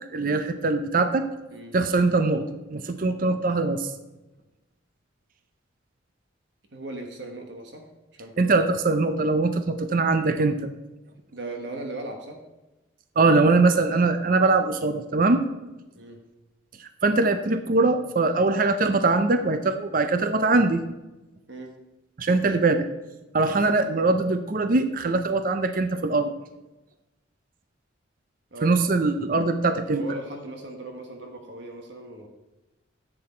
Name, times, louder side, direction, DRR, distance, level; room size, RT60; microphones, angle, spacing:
voice 1, 0.1-1.3 1.7-3.9 8.4-10.7 13.2-15.4 16.8-20.8 22.2-22.9 23.3-26.3 28.6-30.0, right 3 dB, 45° right, 9 dB, 0.5 m, -22 dB
voice 2, 6.7-8.3 11.3-12.4 15.9-16.2 21.5-21.7 23.5-23.8 28.5-28.7 29.9-32.3, right 2 dB, 60° right, 3 dB, 1.3 m, -38 dB
10.5 x 7.8 x 4.3 m, 1.0 s
head